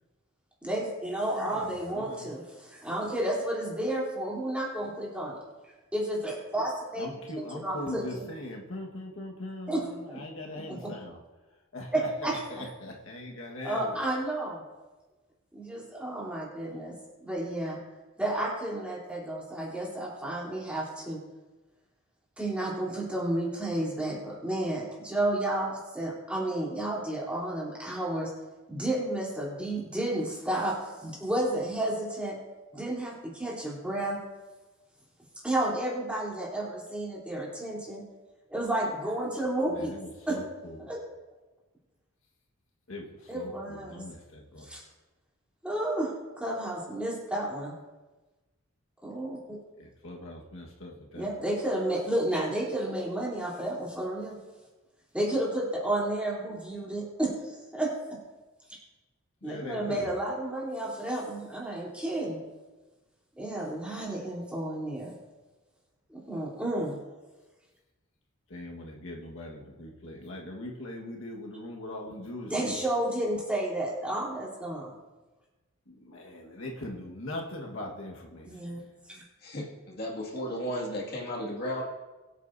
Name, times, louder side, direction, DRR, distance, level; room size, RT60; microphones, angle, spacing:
voice 1, 0.6-5.4 5.9-7.1 7.6-8.3 9.7-9.8 10.7-10.9 11.9-12.4 13.6-14.6 15.5-16.9 17.2-17.8 18.2-21.2 22.4-28.3 28.7-32.4 32.7-34.2 35.4-38.0 38.5-39.9 40.3-40.4 40.9-41.0 43.3-44.0 44.6-44.8 45.6-46.1 46.4-47.7 49.0-49.4 51.1-54.4 55.1-57.9 59.4-62.4 63.4-65.1 66.1-67.0 72.5-74.9 78.4-78.8 79.1-79.2, right 1 dB, 5° right, -6 dB, 3.5 m, -31 dB
voice 2, 1.4-2.3 7.0-11.2 11.7-14.0 39.7-40.9 42.9-44.7 49.8-51.3 59.4-60.1 68.5-72.7 75.9-78.6, left 1 dB, 65° left, -1 dB, 1.6 m, -41 dB
voice 3, 79.4-81.8, equal, 45° left, -3 dB, 2.2 m, -34 dB
23.0 x 8.4 x 2.7 m, 1.2 s
head